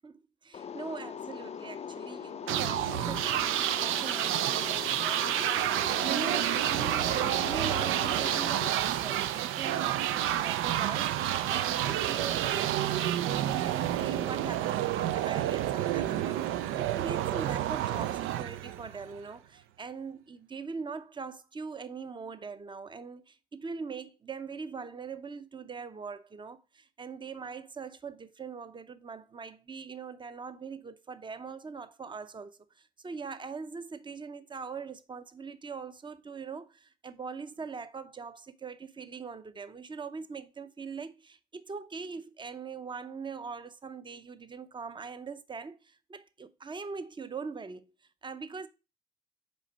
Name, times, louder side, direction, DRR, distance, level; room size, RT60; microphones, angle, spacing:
voice 1, 0.0-47.9 48.2-48.7, right 5 dB, 25° right, 0.6 m, -42 dB
sound 1, 0.5-8.7, left 7 dB, 35° left, 0.4 m, -41 dB
sound 2, 2.5-19.2, right 12 dB, 90° right, 0.4 m, -29 dB
6.4 x 4.3 x 3.9 m
cardioid pair, 90°, 20 cm